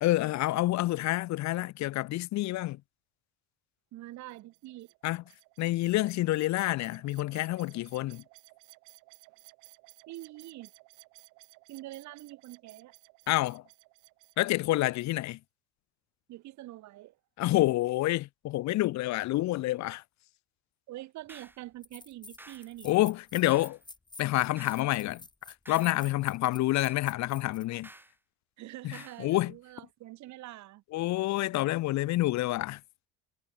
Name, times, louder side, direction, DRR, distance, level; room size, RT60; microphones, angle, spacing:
voice 1, 0.0-2.8 5.0-5.2 5.6-8.2 13.3-13.6 14.4-15.4 17.4-20.0 22.8-23.8 24.2-25.2 25.7-27.9 28.8-29.5 30.9-32.8, left 17 dB, 65° left, 1.2 m, -28 dB
voice 2, 3.9-4.9 10.1-10.7 11.7-12.9 16.3-17.1 20.9-22.9 28.6-30.8, right 16 dB, 65° right, 3.1 m, -45 dB
sound 1, 4.3-15.3, right 28 dB, 85° right, 5.9 m, -58 dB
sound 2, 21.3-21.4 21.8-27.7, left 3 dB, 15° left, 2.9 m, -50 dB
sound 3, 21.3-21.6 22.4-22.7 23.5-23.8 24.6-24.9 25.6-26.0 26.7-27.1 27.8-28.1 28.9-29.2, right 1 dB, 5° right, 2.3 m, -51 dB
supercardioid pair, 100°, 30 cm